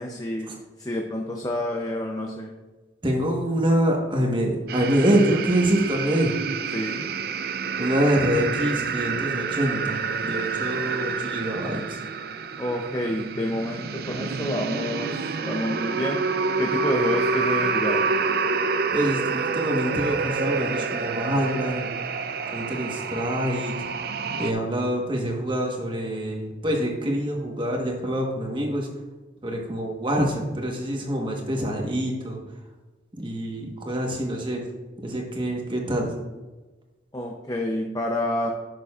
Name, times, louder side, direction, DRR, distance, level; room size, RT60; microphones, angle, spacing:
voice 1, 0.0-2.5 6.7-7.1 12.6-16.2 16.6-18.0 37.1-38.5, left 1 dB, 20° left, 1 dB, 0.6 m, -28 dB
voice 2, 3.0-6.3 7.8-12.0 18.9-21.9 22.5-23.8 24.4-28.9 29.4-32.4 33.1-34.6 35.0-36.1, right 1 dB, 25° right, 1 dB, 1.2 m, -25 dB
sound 1, 4.7-24.5, right 5 dB, 55° right, 0.4 m, -28 dB
11.0 x 6.7 x 2.4 m, 1.2 s
head